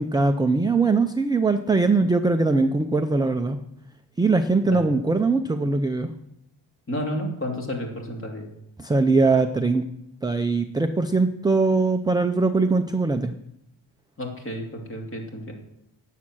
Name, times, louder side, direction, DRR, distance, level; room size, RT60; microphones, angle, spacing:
voice 1, 0.0-3.6 4.2-6.1 8.8-9.8 10.2-13.3, right 3 dB, 10° right, 6 dB, 0.4 m, -21 dB
voice 2, 6.9-8.4 14.2-15.5, equal, 25° left, 1 dB, 2.8 m, -31 dB
18.5 x 7.5 x 6.1 m, 0.78 s
wide cardioid pair, 180°, 45 cm